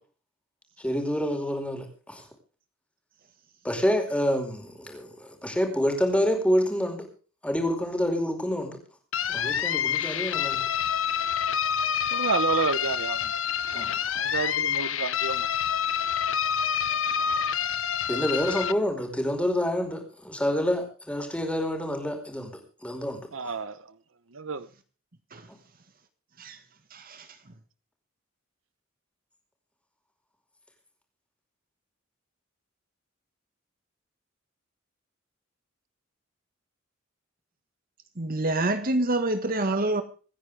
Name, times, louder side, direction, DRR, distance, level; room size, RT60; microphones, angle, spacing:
voice 1, 0.8-2.2 3.6-7.1 7.4-8.8 9.3-10.6 13.7-14.0 18.1-23.5, equal, 5° left, 4.9 m, -28 dB
sound 1, 9.1-18.7, left 8 dB, 75° left, 1.0 m, -27 dB
voice 2, 12.1-13.2 14.2-15.5 23.3-23.7 24.4-24.7, right 4 dB, 75° right, 1.0 m, -29 dB
voice 3, 26.9-27.3 38.2-40.0, right 2 dB, 45° right, 1.7 m, -27 dB
26.5 x 10.0 x 3.5 m
head